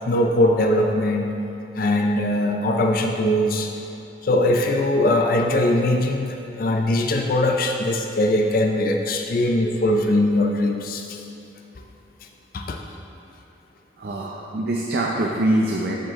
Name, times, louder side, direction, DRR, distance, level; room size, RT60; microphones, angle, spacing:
voice 1, 0.1-1.4 1.7-3.7 4.2-11.2 12.5-12.8, left 1 dB, 55° left, 2 dB, 0.4 m, -21 dB
voice 2, 14.0-16.0, right 1 dB, 60° right, -2 dB, 0.5 m, -23 dB
7.5 x 5.1 x 3.6 m, 2.8 s
head